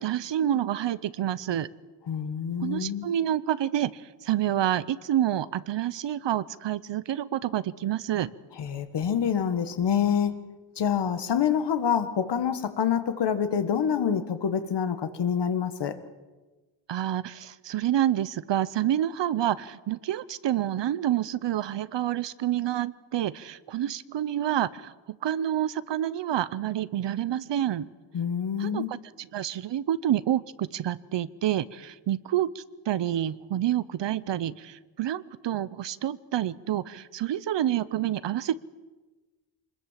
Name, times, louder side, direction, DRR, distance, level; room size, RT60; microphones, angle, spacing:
voice 1, 0.0-1.7 2.6-8.3 16.9-24.9 25.2-27.9 28.6-38.6, right 11 dB, 65° right, 17 dB, 0.8 m, -28 dB
voice 2, 2.1-3.1 8.6-10.3 10.8-15.9 28.1-28.9, left 8 dB, 60° left, 10 dB, 1.7 m, -26 dB
25.5 x 21.0 x 7.5 m, 1.2 s
wide cardioid pair, 140°, 46 cm